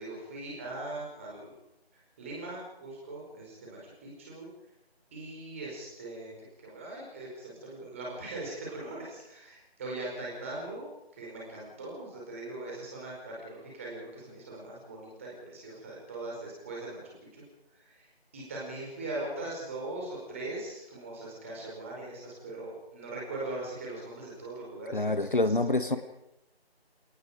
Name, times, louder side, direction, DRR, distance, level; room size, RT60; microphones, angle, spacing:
voice 1, 0.0-1.5 2.2-4.5 5.1-10.9 11.1-17.4 17.8-26.0, right 2 dB, 15° right, -3 dB, 5.0 m, -40 dB
voice 2, 24.9-26.0, left 2 dB, 50° left, 11 dB, 1.4 m, -26 dB
28.0 x 18.5 x 5.2 m, 0.83 s
figure-of-eight pair, 165°, 32 cm